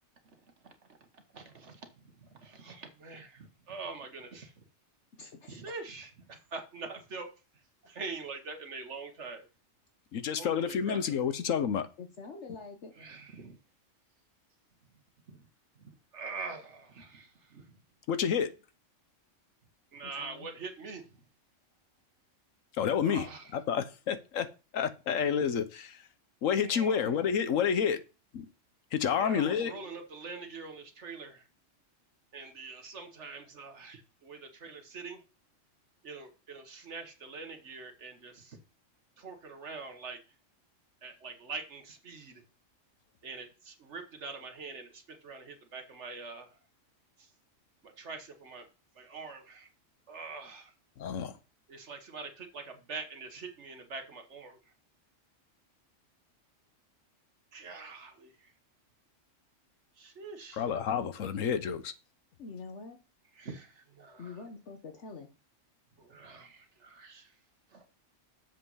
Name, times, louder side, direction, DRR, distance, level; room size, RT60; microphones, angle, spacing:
voice 1, 1.3-4.5 5.5-7.3 7.8-9.5 10.4-11.0 13.0-13.6 15.3-15.5 15.8-17.8 19.9-21.1 23.0-23.5 26.6-27.1 29.2-31.5 32.3-35.2 36.0-38.6 39.2-40.2 41.0-42.4 43.2-46.5 47.2-47.3 47.8-48.7 48.9-49.7 50.1-50.7 51.7-54.6 57.5-58.5 60.0-60.6 63.3-64.4 66.0-67.3 67.7-67.9, right 4 dB, 65° right, 1.5 m, -44 dB
voice 2, 5.2-5.6 12.0-12.9 20.0-20.5 62.4-63.0 64.2-65.3, left 4 dB, 65° left, 1.3 m, -45 dB
voice 3, 10.1-11.9 18.1-18.5 22.7-23.3 23.5-24.5 24.7-26.1 26.4-28.0 28.3-28.5 28.9-29.8 51.0-51.3 60.5-61.9, left 7 dB, 90° left, 1.3 m, -29 dB
7.3 x 5.4 x 5.6 m
omnidirectional pair, 1.3 m